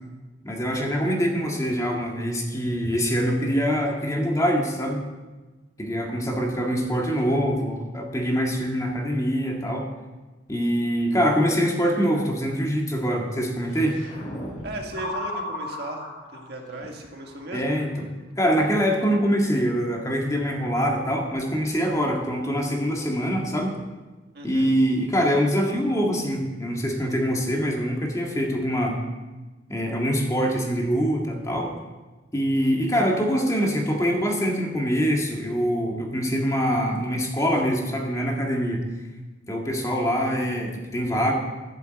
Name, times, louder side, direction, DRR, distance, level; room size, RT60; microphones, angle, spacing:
voice 1, 0.4-5.0 5.8-9.9 10.5-14.0 17.5-17.9 18.4-23.8 24.4-29.0 29.7-31.7 32.3-38.8 39.5-41.3, equal, 15° left, 0 dB, 1.8 m, -24 dB
sound 1, 13.7-18.0 18.3-18.6 19.9-20.8 21.2-22.2 25.2-25.3 25.5-26.2, left 1 dB, 40° left, 3.2 m, -37 dB
voice 2, 14.6-16.1 16.3-17.7 24.3-24.7, right 2 dB, 60° right, 2 dB, 1.8 m, -36 dB
12.0 x 7.4 x 7.9 m, 1.2 s
head